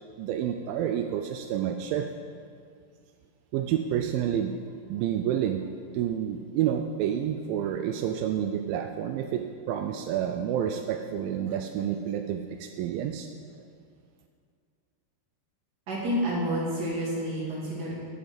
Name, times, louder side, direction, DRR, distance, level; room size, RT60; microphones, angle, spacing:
voice 1, 0.2-2.1 3.5-4.5 4.9-5.6 5.9-13.3, right 10 dB, 90° right, 6 dB, 2.0 m, -29 dB
voice 2, 15.9-17.9, equal, 30° right, -5 dB, 2.3 m, -29 dB
9.4 x 8.7 x 5.2 m, 2.2 s
omnidirectional pair, 4.6 m